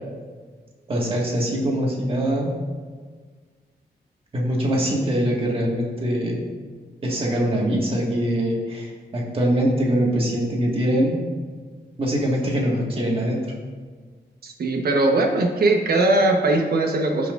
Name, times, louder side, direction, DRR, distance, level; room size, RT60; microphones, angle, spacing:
voice 1, 0.9-2.5 4.3-6.4 7.0-11.2 12.0-13.5, equal, 30° right, -2 dB, 1.8 m, -23 dB
voice 2, 14.4-17.3, right 2 dB, 65° right, 2 dB, 1.2 m, -20 dB
16.0 x 5.7 x 2.6 m, 1.5 s
wide cardioid pair, 165°, 17 cm